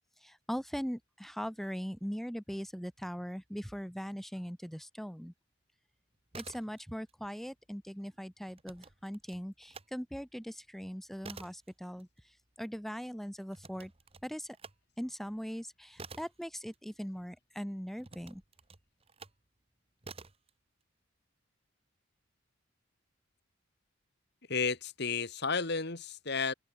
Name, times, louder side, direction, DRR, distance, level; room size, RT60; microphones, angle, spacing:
voice 1, 0.2-5.3 6.4-13.9 14.2-14.6 15.0-18.4, equal, ahead, 1.6 m, -40 dB
sound 1, 6.1-7.1 7.4-9.9 10.3-17.3 18.0-19.5 20.0-20.5, right 4 dB, 30° right, 1.6 m, -51 dB
voice 2, 24.5-26.5, left 5 dB, 55° left, 2.5 m, -32 dB
head